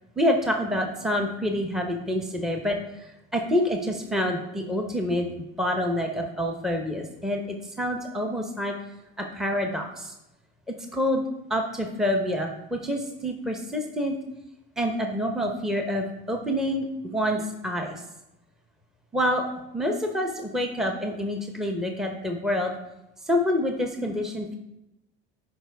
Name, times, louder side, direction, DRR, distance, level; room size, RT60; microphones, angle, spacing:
voice 1, 0.2-5.3 5.6-8.7 9.2-10.1 10.7-11.2 11.5-14.2 14.8-18.0 19.1-19.4 19.7-22.7 23.2-24.6, equal, ahead, 3 dB, 0.8 m, -27 dB
11.0 x 5.2 x 3.4 m, 0.91 s
supercardioid pair, 115°, 29 cm